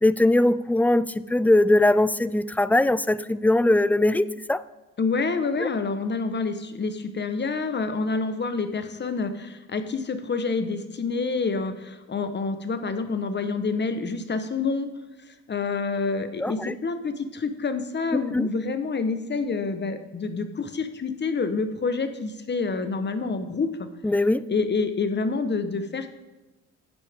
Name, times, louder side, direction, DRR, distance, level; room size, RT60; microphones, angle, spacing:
voice 1, 0.0-4.6 16.4-16.7 18.3-18.5 24.0-24.4, left 1 dB, 5° left, 16 dB, 0.3 m, -21 dB
voice 2, 5.0-14.9 15.3-23.7 24.5-26.1, left 4 dB, 35° left, 9 dB, 1.2 m, -27 dB
12.0 x 8.9 x 3.6 m, 1.1 s
cardioid pair, 90°, 30 cm